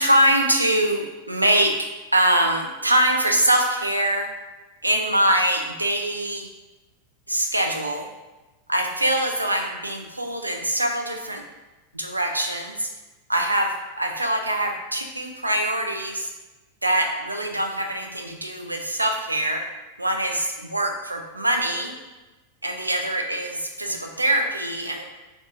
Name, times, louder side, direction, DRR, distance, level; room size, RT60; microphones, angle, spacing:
voice 1, 0.0-4.3 4.8-6.5 7.3-8.1 8.7-11.4 11.9-12.9 13.3-16.3 16.8-19.7 20.0-21.9 22.6-25.0, right 1 dB, 85° right, 3 dB, 0.3 m, -23 dB
3.7 x 2.6 x 2.3 m, 1.1 s
figure-of-eight pair, 90°, 0 cm